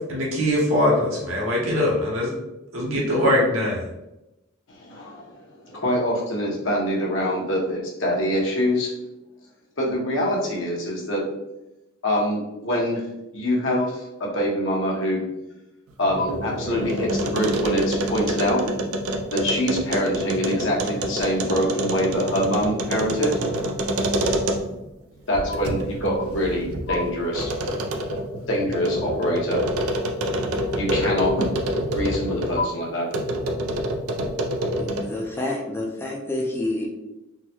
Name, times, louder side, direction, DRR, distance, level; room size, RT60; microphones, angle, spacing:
voice 1, 0.1-2.3 2.7-3.8, left 1 dB, 70° right, -4 dB, 0.8 m, -22 dB
voice 2, 4.7-8.9 9.8-11.2 12.0-13.0 13.3-15.2 16.0-18.6 19.3-23.4 25.3-27.5 28.5-29.6 30.8-31.5 31.9-33.1, equal, 60° left, -2 dB, 0.9 m, -24 dB
sound 1, 15.9-24.9 25.3-32.6 33.1-35.2, right 1 dB, 90° right, 0.5 m, -27 dB
voice 3, 34.8-36.9, left 1 dB, 10° left, -2 dB, 0.4 m, -28 dB
3.7 x 2.1 x 2.9 m, 0.94 s
head